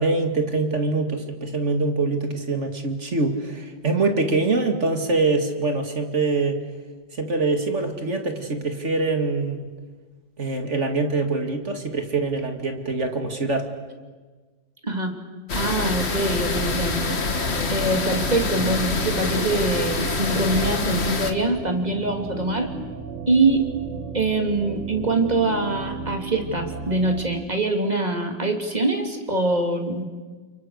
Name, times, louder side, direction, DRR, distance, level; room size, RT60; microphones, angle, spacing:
voice 1, 0.0-6.6 7.1-9.7 10.4-13.7, right 3 dB, 35° right, 5 dB, 2.5 m, -24 dB
voice 2, 14.8-15.1 15.5-17.0 17.7-22.7 23.3-23.7 24.1-30.0, right 2 dB, 20° right, 4 dB, 2.9 m, -24 dB
sound 1, 15.5-21.3, left 4 dB, 35° left, 1.8 m, -26 dB
sound 2, 15.8-27.2, right 4 dB, 55° right, 7.6 m, -35 dB
29.5 x 29.0 x 6.6 m, 1.4 s
omnidirectional pair, 2.1 m